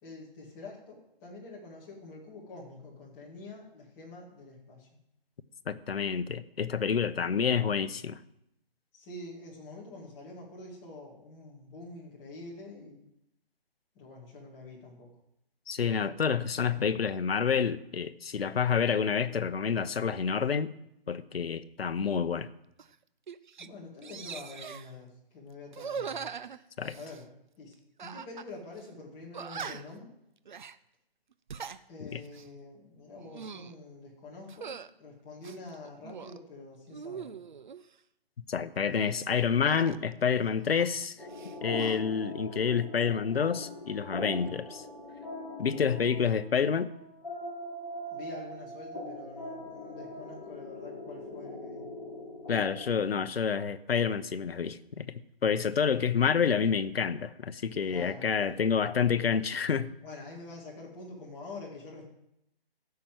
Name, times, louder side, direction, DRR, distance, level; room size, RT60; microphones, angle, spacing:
voice 1, 0.0-4.9 7.1-7.4 8.9-13.1 13.9-15.1 23.6-26.3 26.9-27.3 27.6-30.1 31.9-37.3 48.1-51.9 57.8-58.3 60.0-62.1, left 2 dB, 15° left, 2.2 m, -46 dB
voice 2, 5.7-8.2 15.7-20.7 21.1-22.5 26.8-27.0 32.1-32.2 38.5-41.2 41.6-44.8 45.6-46.9 52.5-60.0, left 6 dB, 80° left, 0.9 m, -28 dB
sound 1, 22.8-22.9 23.3-23.7 24.0-24.9 25.7-27.2 28.0-28.5 28.8-28.9 29.3-30.0 30.5-30.8 31.3-31.8 32.2-32.5 33.1-33.7 34.5-34.9 35.4-36.4 36.9-37.8 39.6-41.0 41.3-42.0, right 6 dB, 50° right, 0.6 m, -42 dB
sound 2, 41.2-52.9, left 1 dB, 5° right, 4.1 m, -41 dB
14.5 x 5.8 x 7.8 m
hypercardioid pair, 170°, 30 cm